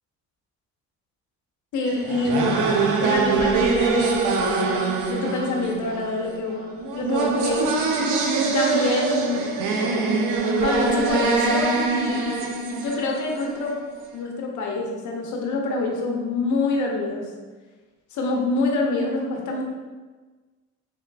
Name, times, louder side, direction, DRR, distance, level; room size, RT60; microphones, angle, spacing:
voice 1, 1.7-2.6 3.0-4.3 5.1-7.7 8.5-9.4 10.5-12.5 12.8-13.8 14.1-17.3 18.1-19.6, left 3 dB, 75° left, 0 dB, 0.7 m, -26 dB
sound 1, 1.9-13.7, right 4 dB, 90° right, 0.5 m, -23 dB
3.4 x 3.2 x 2.3 m, 1.3 s
cardioid pair, 90°, 30 cm